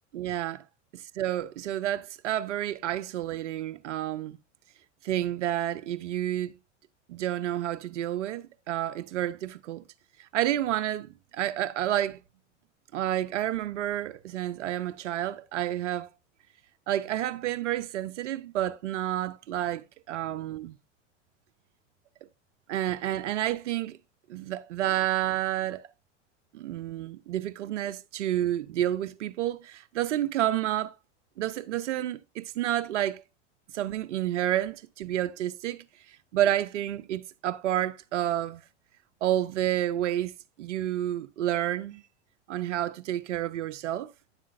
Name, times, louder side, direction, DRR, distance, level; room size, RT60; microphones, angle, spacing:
voice 1, 0.1-0.6 0.9-4.4 5.0-6.5 7.1-9.8 10.2-12.2 12.9-16.1 16.9-20.8 22.7-24.0 24.3-25.9 26.5-30.9 31.4-33.2 33.7-38.6 39.2-40.3 40.6-42.0 42.5-44.1, right 12 dB, 85° right, 0.6 m, -30 dB
9.7 x 7.3 x 2.5 m
hypercardioid pair, 90°, 35 cm